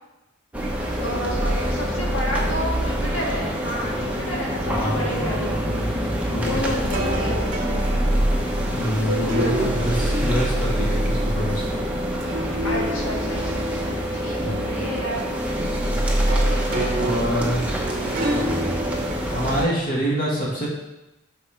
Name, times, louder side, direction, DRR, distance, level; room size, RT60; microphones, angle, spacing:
stere-tone-schoeps-m-s-village-indoors, 0.5-19.7, equal, 5° right, 0.6 m, -25 dB
voice 1, 1.0-5.6 6.3-8.0 9.0-9.8 12.6-15.3 18.0-18.4, equal, 70° left, -3 dB, 1.6 m, -30 dB
voice 2, 4.7-6.9 7.2-7.4 8.7-11.8 14.4-14.8 17.0-17.7 19.3-20.7, equal, 40° left, -4 dB, 1.6 m, -27 dB
sound 1, 5.9-19.1, right 1 dB, 40° right, 0.9 m, -31 dB
5.2 x 4.0 x 5.6 m, 0.99 s
head